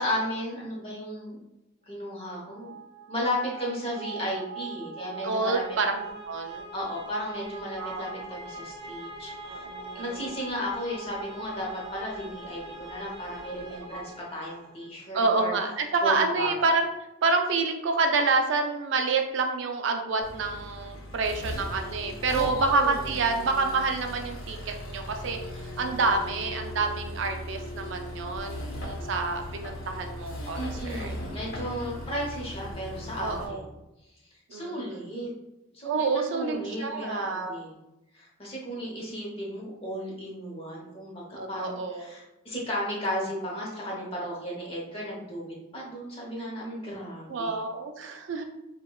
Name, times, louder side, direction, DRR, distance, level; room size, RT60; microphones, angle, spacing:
voice 1, 0.0-1.4 1.9-2.7 3.1-5.6 6.7-9.7 9.9-15.6 16.0-16.5 22.3-23.0 30.6-33.6 34.5-35.3 35.7-37.7 38.1-47.6, equal, 25° left, -4 dB, 0.9 m, -34 dB
sound 1, 2.1-14.9, right 3 dB, 25° right, 1.0 m, -42 dB
voice 2, 5.2-6.7 7.8-8.0 9.4-10.3 13.9-14.0 15.1-16.9 17.2-30.6 30.8-31.1 31.9-32.0 33.2-33.6 34.5-35.1 35.8-37.5 41.4-42.1 47.3-48.4, right 3 dB, 60° right, 4 dB, 0.4 m, -28 dB
Accelerating revving vroom, 20.2-33.5, left 1 dB, 80° left, 0.9 m, -38 dB
4.9 x 2.2 x 2.3 m, 0.94 s
head